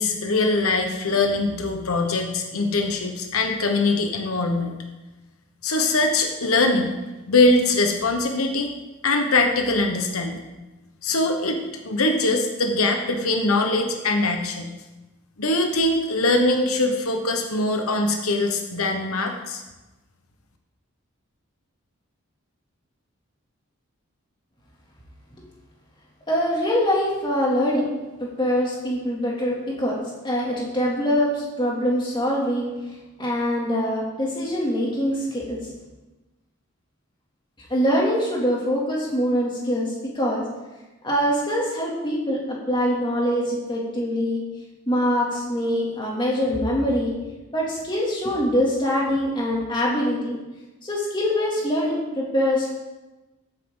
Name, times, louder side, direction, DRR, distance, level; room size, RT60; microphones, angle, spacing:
voice 1, 0.0-4.7 5.6-6.9 7.3-8.7 9.0-10.4 11.0-11.6 11.8-14.7 15.4-19.6, left 2 dB, 85° left, 4 dB, 1.2 m, -22 dB
voice 2, 26.3-27.9 28.2-30.0 30.2-32.7 33.2-35.6 37.7-40.4 41.0-44.4 44.9-47.1 47.5-50.4 50.8-52.7, equal, 20° left, -4 dB, 2.7 m, -23 dB
13.5 x 9.4 x 3.9 m, 1.1 s
head